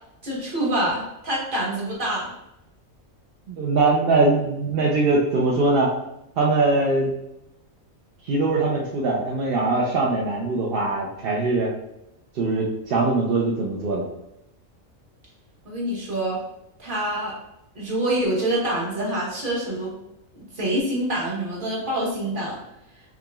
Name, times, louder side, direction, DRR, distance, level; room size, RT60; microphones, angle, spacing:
voice 1, 0.2-2.3 15.6-16.4 16.8-17.3 17.7-19.9 20.3-22.6, right 1 dB, 40° right, -5 dB, 1.2 m, -26 dB
voice 2, 3.5-5.9 6.4-7.1 8.2-11.7 12.3-14.0, right 3 dB, 60° right, -3 dB, 0.6 m, -22 dB
4.8 x 2.8 x 2.3 m, 0.85 s
omnidirectional pair, 1.4 m